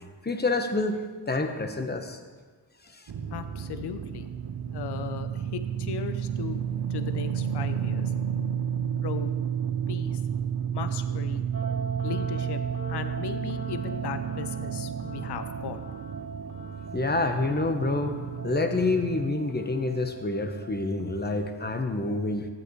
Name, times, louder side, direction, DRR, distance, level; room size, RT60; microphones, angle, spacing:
voice 1, 0.2-1.0 1.3-2.2 16.9-22.5, left 2 dB, 20° left, 6 dB, 1.1 m, -27 dB
sound 1, 3.1-19.3, right 8 dB, 55° right, 0.8 m, -31 dB
voice 2, 3.3-4.3 4.7-6.6 6.9-8.1 9.0-9.3 9.9-10.2 10.7-11.4 12.0-12.6 12.9-15.8, left 8 dB, 65° left, 10 dB, 0.7 m, -37 dB
sound 2, 11.5-21.2, right 2 dB, 30° right, 3.2 m, -41 dB
12.5 x 8.0 x 3.2 m, 1.4 s
cardioid pair, 55°, 44 cm